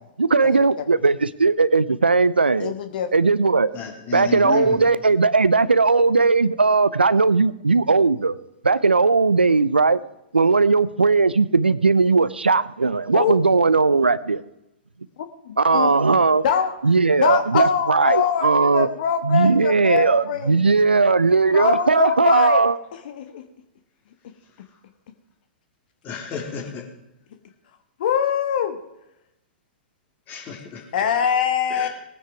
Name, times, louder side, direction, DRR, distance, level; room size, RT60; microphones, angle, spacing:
voice 1, 0.2-2.7 3.1-3.7 4.1-8.4 8.6-10.0 10.3-14.4 15.6-16.4 16.8-18.9 19.2-22.8, right 4 dB, 90° right, 17 dB, 0.6 m, -18 dB
voice 2, 2.6-3.1 13.1-13.4 15.4-15.9 16.4-16.8 17.2-20.6 21.5-22.6 22.9-23.5 28.0-28.8 30.9-31.9, left 7 dB, 60° left, 9 dB, 1.3 m, -23 dB
voice 3, 3.7-4.9 26.0-26.9 30.3-30.9 31.7-31.9, left 7 dB, 30° left, 2 dB, 3.5 m, -31 dB
19.0 x 9.6 x 4.7 m, 0.88 s
figure-of-eight pair, 110°, 5 cm